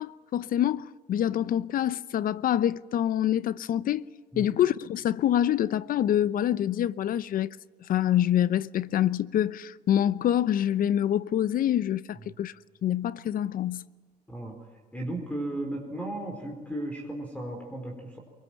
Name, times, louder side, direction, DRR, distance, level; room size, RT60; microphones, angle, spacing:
voice 1, 0.0-4.1 4.4-7.6 7.9-12.5 12.8-13.8, left 11 dB, 55° left, 0.8 m, -26 dB
voice 2, 14.9-18.2, right 1 dB, 10° left, 4.4 m, -35 dB
23.5 x 23.0 x 9.1 m
cardioid pair, 110°, 17 cm